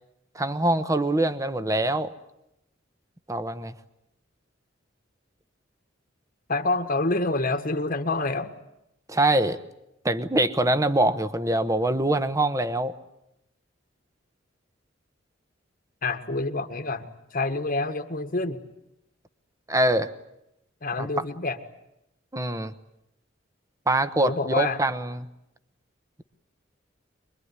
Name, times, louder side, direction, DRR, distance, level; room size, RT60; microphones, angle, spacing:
voice 1, 0.3-2.1 3.3-3.7 9.1-9.6 10.0-12.9 19.7-20.1 21.0-21.1 22.3-22.7 23.9-25.3, right 1 dB, 15° right, 12 dB, 1.1 m, -24 dB
voice 2, 6.5-8.5 16.0-18.6 20.8-21.6 24.1-24.8, left 2 dB, 50° left, 7 dB, 1.6 m, -27 dB
24.5 x 22.5 x 9.7 m, 0.86 s
head